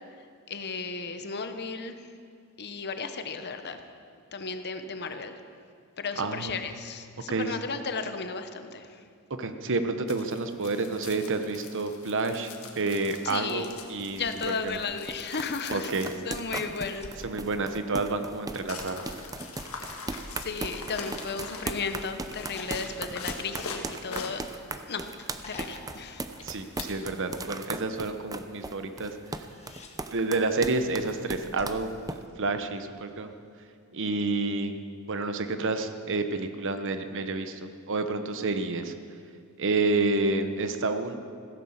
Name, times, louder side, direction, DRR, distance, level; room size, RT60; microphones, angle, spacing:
voice 1, 0.5-2.0 2.6-3.8 4.3-5.4 6.0-9.0 13.2-13.7 14.2-15.9 16.2-17.1 20.3-24.4 24.8-25.1 25.4-26.2, left 4 dB, 50° left, 8 dB, 1.0 m, -34 dB
voice 2, 6.2-6.6 7.3-7.6 9.4-14.8 15.7-16.1 17.2-19.0 26.4-29.2 30.1-33.3 33.9-34.8 35.1-38.9 39.6-41.1, right 3 dB, 60° right, 8 dB, 1.0 m, -29 dB
sound 1, 10.1-27.1, left 4 dB, 70° left, 1.7 m, -44 dB
sound 2, 13.1-32.2, right 3 dB, 15° right, 0.6 m, -38 dB
sound 3, 16.9-18.5 20.0-21.7 22.5-24.8 25.4-27.2 29.2-30.0 31.6-33.0 34.6-34.7, left 2 dB, 30° left, 1.6 m, -50 dB
15.5 x 10.5 x 7.2 m, 2.2 s
head